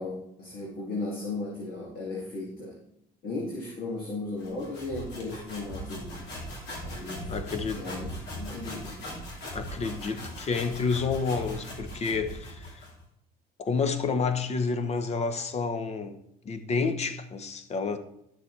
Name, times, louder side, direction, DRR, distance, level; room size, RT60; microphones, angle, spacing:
voice 1, 0.0-2.7 3.2-7.3 7.7-9.0, left 2 dB, 60° left, 2.3 m, -36 dB
sound 1, 4.4-13.0, equal, 85° left, 2.7 m, -39 dB
voice 2, 7.3-7.9 9.5-12.8 13.6-16.2 16.4-18.0, left 4 dB, 40° left, 0.9 m, -29 dB
11.5 x 6.8 x 3.3 m
cardioid pair, 110°, 17 cm